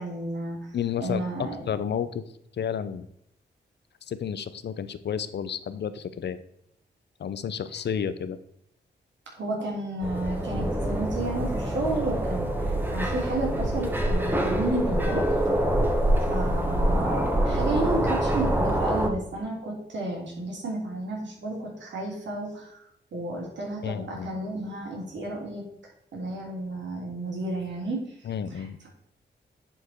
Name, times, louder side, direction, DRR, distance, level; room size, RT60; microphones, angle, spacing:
voice 1, 0.0-0.7 1.0-1.6 9.3-12.5 12.9-15.3 16.3-22.8 23.1-25.6 26.1-28.1 28.6-28.9, right 2 dB, 80° right, -2 dB, 3.2 m, -32 dB
voice 2, 0.7-2.2 2.6-3.1 4.1-6.4 7.2-8.4 23.8-24.3 28.2-28.8, left 8 dB, 65° left, 13 dB, 0.7 m, -31 dB
sound 1, 10.0-19.1, right 1 dB, 10° right, 1.5 m, -25 dB
9.8 x 4.6 x 4.5 m, 0.76 s
cardioid pair, 80°, 19 cm